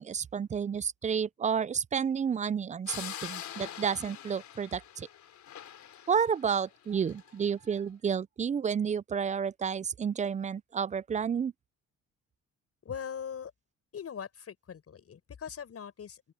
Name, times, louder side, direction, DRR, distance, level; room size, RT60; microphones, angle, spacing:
voice 1, 0.0-5.1 6.1-11.5, right 7 dB, 25° right, 0.3 m, -31 dB
sound 1, 2.9-7.3, left 10 dB, 65° left, 3.8 m, -44 dB
voice 2, 12.8-13.5 13.9-16.3, left 7 dB, 50° left, 6.6 m, -41 dB
open air
cardioid pair, 90°, 30 cm